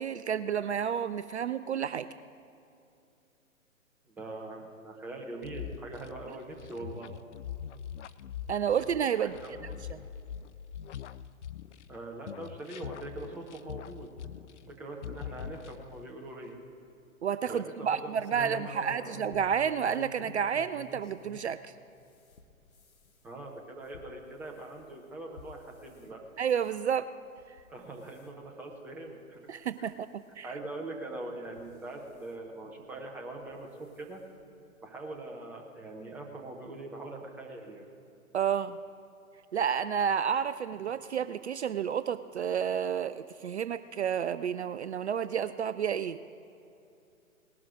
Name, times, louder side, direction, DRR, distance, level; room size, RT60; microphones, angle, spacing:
voice 1, 0.0-2.1 8.5-9.4 17.2-21.7 26.4-27.1 27.5-27.6 29.5-30.5 38.3-38.8 39.5-46.2, right 8 dB, 55° right, 13 dB, 0.4 m, -30 dB
voice 2, 4.1-7.1 9.2-9.6 11.9-14.4 14.7-16.6 17.5-18.1 18.4-19.2 23.2-26.2 27.7-29.5 29.8-29.9 30.4-34.2 34.8-37.9, right 2 dB, 5° right, 1 dB, 0.6 m, -42 dB
sound 1, 5.4-12.0 12.3-14.8 15.0-16.1, left 9 dB, 55° left, 0.5 m, -43 dB
sound 2, 18.2-21.5 21.9-26.1 26.5-26.8 27.4-27.7 28.0-28.3 28.9-29.0 29.3-29.4 30.6-30.7 31.4-32.3 33.4-33.6 34.0-34.1 34.4-34.5, left 5 dB, 85° left, 1.1 m, -50 dB
19.0 x 12.0 x 3.8 m, 2.7 s
figure-of-eight pair, 120°, 42 cm